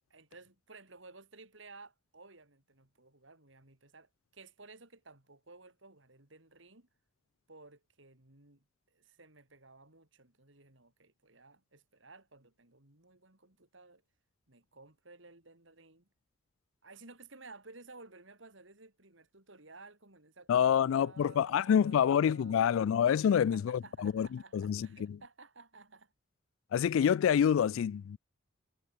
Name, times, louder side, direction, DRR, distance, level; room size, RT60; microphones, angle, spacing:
voice 1, 0.1-6.9 7.5-8.6 8.9-14.0 14.5-16.1 16.8-23.0 23.3-26.1, right 3 dB, 70° right, 4.1 m, -55 dB
voice 2, 20.5-25.2 26.7-28.2, left 8 dB, 90° left, 0.3 m, -27 dB
head